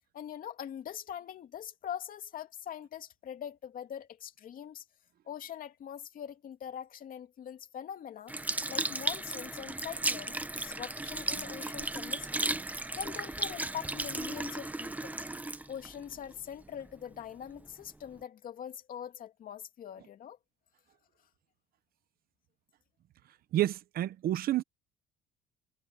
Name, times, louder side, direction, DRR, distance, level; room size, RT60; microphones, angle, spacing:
voice 1, 0.1-4.8 5.3-8.3 8.7-15.2 15.7-20.4, left 9 dB, 55° left, 2.5 m, -43 dB
Sink (filling or washing) / Liquid, 8.3-16.9 17.5-17.6, right 2 dB, 10° right, 0.9 m, -35 dB
voice 2, 23.5-24.6, right 13 dB, 65° right, 1.0 m, -29 dB
cardioid pair, 110°, 17 cm